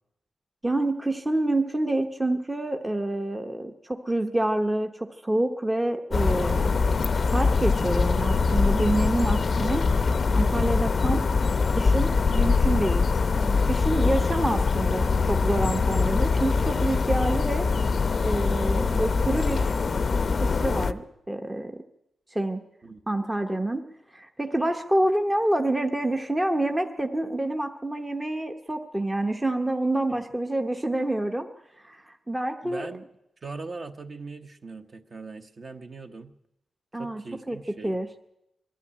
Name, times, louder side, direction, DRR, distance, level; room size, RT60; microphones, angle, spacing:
voice 1, 0.6-9.9 10.3-11.3 11.7-13.0 13.3-17.7 18.2-19.6 20.4-21.8 22.3-22.6 23.1-23.9 24.1-31.5 31.8-32.9 36.9-37.2 37.5-37.6 37.8-38.1, right 1 dB, 10° right, 5 dB, 0.9 m, -27 dB
sound 1, 6.1-20.9, left 4 dB, 40° left, 0.7 m, -23 dB
voice 2, 19.3-19.8 22.8-23.0 30.1-30.2 32.6-33.1 33.4-36.3 36.9-38.0, right 3 dB, 35° right, 7 dB, 1.1 m, -41 dB
21.5 x 13.0 x 9.8 m, 0.88 s
wide cardioid pair, 155°, 0 cm